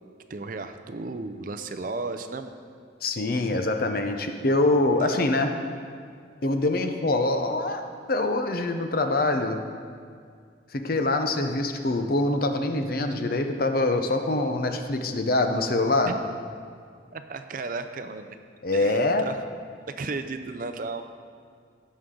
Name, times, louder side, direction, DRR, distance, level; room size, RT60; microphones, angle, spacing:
voice 1, 0.3-2.5 5.0-5.2 16.1-16.2 17.1-18.4 18.7-19.4 19.9-21.0, right 3 dB, 45° right, 9 dB, 0.5 m, -34 dB
voice 2, 3.0-5.5 6.4-7.8 8.1-9.6 10.7-16.1 18.6-19.2, left 2 dB, 50° left, 6 dB, 0.7 m, -24 dB
16.5 x 6.5 x 3.8 m, 2.2 s
head